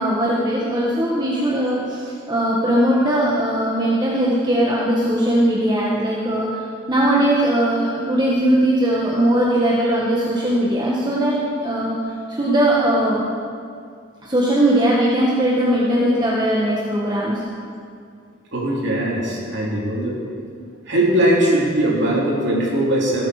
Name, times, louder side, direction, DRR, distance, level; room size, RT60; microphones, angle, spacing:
voice 1, 0.0-6.5 6.9-12.0 12.3-13.2 14.2-17.4, right 1 dB, 20° right, -6 dB, 1.5 m, -19 dB
voice 2, 18.5-20.2 20.9-23.3, right 1 dB, 65° right, -4 dB, 3.1 m, -20 dB
18.0 x 8.4 x 4.9 m, 2.2 s
head